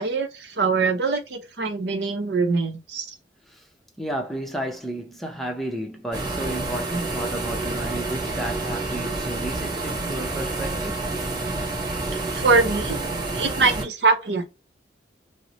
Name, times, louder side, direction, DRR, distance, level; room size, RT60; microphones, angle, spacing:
voice 1, 0.0-3.1 12.1-13.0 13.3-14.5, right 4 dB, 70° right, 0.7 m, -23 dB
voice 2, 4.0-11.0, right 1 dB, ahead, 0.6 m, -32 dB
sound 1, 6.1-13.8, right 2 dB, 25° right, 1.0 m, -28 dB
3.1 x 2.0 x 3.9 m
head